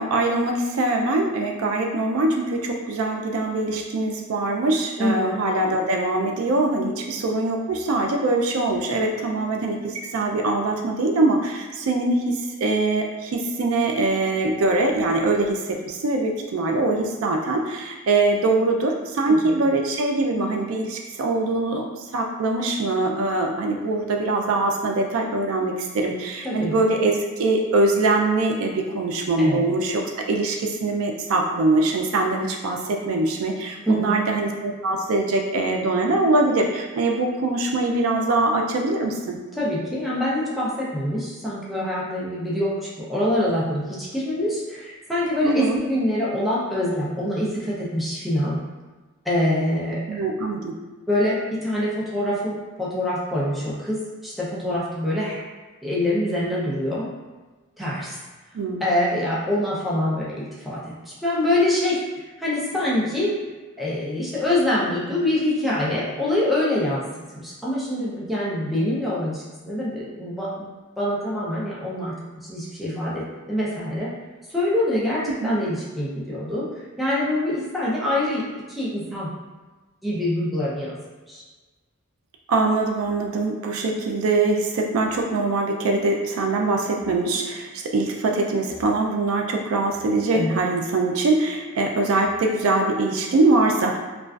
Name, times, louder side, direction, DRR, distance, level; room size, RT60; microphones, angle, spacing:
voice 1, 0.0-21.9 22.1-39.4 45.4-45.8 50.1-50.8 58.5-58.9 75.4-75.5 82.5-94.0, right 2 dB, 90° right, 2 dB, 0.4 m, -23 dB
voice 2, 5.0-5.3 19.3-19.6 26.4-26.8 29.4-29.6 33.9-34.2 39.6-48.6 49.3-50.0 51.1-55.4 55.8-57.1 57.8-58.2 58.8-62.0 62.4-63.4 63.8-67.1 67.3-70.7 71.0-74.1 74.5-76.7 77.0-78.4 78.7-79.3 80.0-81.0 81.3-81.4 90.3-90.6, left 1 dB, ahead, -8 dB, 0.5 m, -25 dB
2.4 x 2.3 x 2.3 m, 1.3 s
head